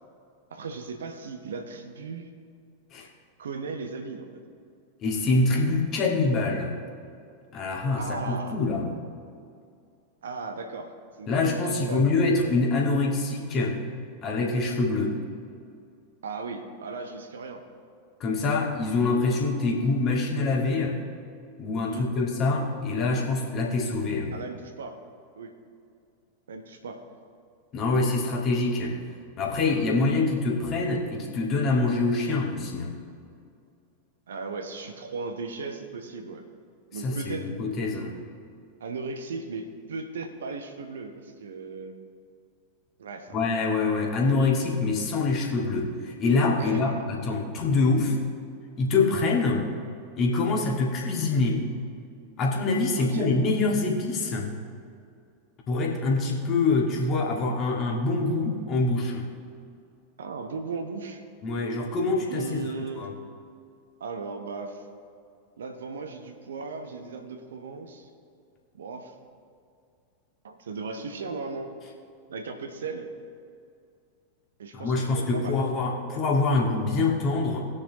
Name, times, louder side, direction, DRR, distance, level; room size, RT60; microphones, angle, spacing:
voice 1, 0.5-2.3 3.4-4.4 8.0-8.7 10.2-10.9 11.2-12.1 16.2-17.7 21.9-22.1 24.3-25.0 25.4-25.5 26.5-27.0 34.3-36.4 36.9-37.5 38.8-41.9 43.0-43.7 46.6-47.0 53.0-53.3 60.2-61.2 62.3-63.1 64.0-64.8 65.6-68.1 68.7-69.2 70.4-71.7 72.3-73.1 74.6-75.6, right 4 dB, 65° right, 5 dB, 1.0 m, -37 dB
voice 2, 5.0-6.7 7.5-8.9 11.3-13.8 14.2-15.2 18.2-21.0 21.6-24.4 27.7-29.0 29.4-33.0 37.0-38.1 43.3-48.2 48.8-49.7 50.2-51.7 52.4-54.5 55.7-59.3 61.4-63.1 74.7-77.6, left 3 dB, 35° left, -1 dB, 1.8 m, -25 dB
19.5 x 6.5 x 2.9 m, 2.3 s
figure-of-eight pair, 90°, 0 cm